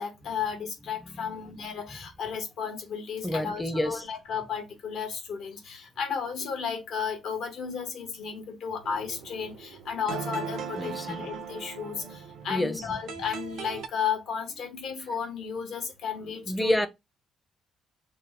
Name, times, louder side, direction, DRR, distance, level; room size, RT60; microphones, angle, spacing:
voice 1, 0.0-16.8, left 6 dB, 75° left, 1.0 m, -34 dB
voice 2, 3.2-4.0 10.8-11.3 12.5-12.8 16.5-16.9, left 1 dB, 5° left, 0.5 m, -28 dB
sound 1, 8.8-13.9, right 6 dB, 80° right, 0.6 m, -39 dB
2.9 x 2.1 x 3.3 m
cardioid pair, 90°, 0 cm